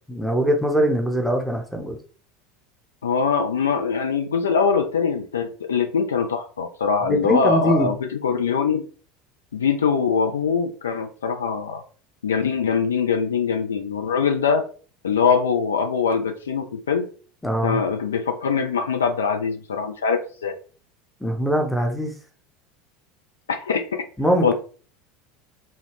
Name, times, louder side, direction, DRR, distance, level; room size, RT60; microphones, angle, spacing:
voice 1, 0.1-2.0 7.1-7.9 17.4-17.8 21.2-22.1 24.2-24.5, equal, 5° left, 4 dB, 0.6 m, -22 dB
voice 2, 3.0-8.8 9.5-11.8 12.2-14.6 15.0-17.1 17.6-20.5 23.5-23.9 24.4-24.5, left 6 dB, 70° left, 7 dB, 0.3 m, -22 dB
2.3 x 2.1 x 3.3 m, 0.41 s
figure-of-eight pair, 75°, 0 cm